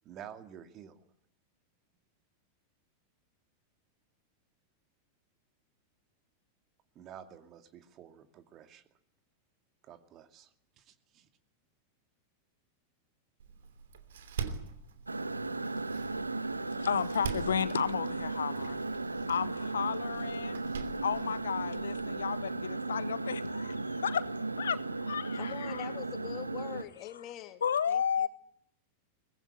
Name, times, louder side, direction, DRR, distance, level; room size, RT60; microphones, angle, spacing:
voice 1, 0.0-1.0 6.9-8.9 9.8-11.3, right 9 dB, 35° right, 8 dB, 2.3 m, -51 dB
Door, 13.4-22.4, right 6 dB, 60° right, 2.9 m, -44 dB
sound 1, 15.1-26.8, right 3 dB, 80° right, 1.2 m, -36 dB
voice 2, 16.8-18.8 19.3-20.6 21.0-24.2 24.6-25.9 27.6-28.3, left 7 dB, 70° left, 14 dB, 1.5 m, -33 dB
voice 3, 25.3-28.3, left 14 dB, 35° left, 8 dB, 2.9 m, -44 dB
23.5 x 21.0 x 9.8 m, 0.65 s
figure-of-eight pair, 90°, 0 cm